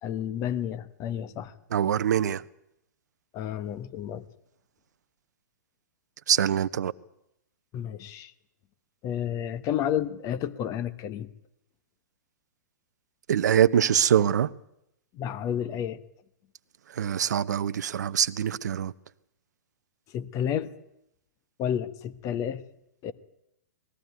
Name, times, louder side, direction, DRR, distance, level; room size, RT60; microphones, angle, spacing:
voice 1, 0.0-1.5 3.3-4.3 7.7-8.3 9.0-11.3 15.1-16.0 20.1-20.7 21.6-22.6 23.0-23.1, left 9 dB, 35° left, 1.2 m, -31 dB
voice 2, 1.7-2.4 6.3-6.9 13.3-14.5 16.9-18.9, right 9 dB, 75° right, 0.7 m, -24 dB
20.0 x 14.5 x 9.5 m
hypercardioid pair, 120°, 9 cm